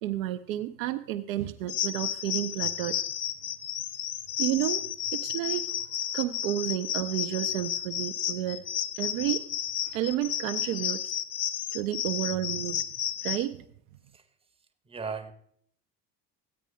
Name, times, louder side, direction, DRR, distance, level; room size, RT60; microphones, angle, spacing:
voice 1, 0.0-3.0 4.4-4.8 5.1-5.7 6.1-8.6 9.0-9.4 9.9-11.2 11.7-12.8 13.2-13.7, right 13 dB, 55° right, 7 dB, 0.6 m, -31 dB
sound 1, 1.7-13.4, left 10 dB, 55° left, 0.9 m, -32 dB
voice 2, 14.9-15.3, right 5 dB, 10° right, 8 dB, 0.8 m, -36 dB
14.5 x 8.9 x 3.5 m, 0.65 s
figure-of-eight pair, 60°, 49 cm